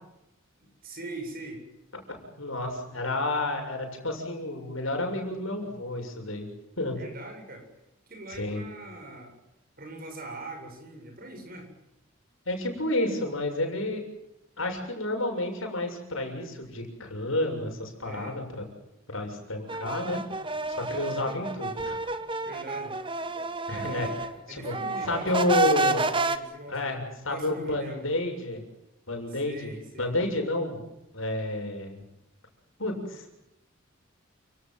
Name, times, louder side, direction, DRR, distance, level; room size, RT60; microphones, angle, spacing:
voice 1, 0.6-1.6 6.9-7.7 8.1-9.4 9.8-11.7 18.0-18.4 22.4-23.0 23.7-24.2 24.5-28.1 29.3-30.1, right 2 dB, 45° right, 3 dB, 7.8 m, -42 dB
voice 2, 2.1-6.5 6.8-7.0 8.4-8.6 12.5-14.0 14.6-18.6 19.1-20.2 20.7-22.0 23.7-24.1 24.5-24.7 25.0-26.1 26.7-28.6 29.1-30.8 31.1-32.0 32.8-33.3, left 1 dB, 75° left, 4 dB, 7.1 m, -30 dB
sound 1, 19.7-24.3 24.6-26.4, right 3 dB, 25° right, 1.2 m, -30 dB
29.5 x 18.5 x 7.7 m, 0.86 s
head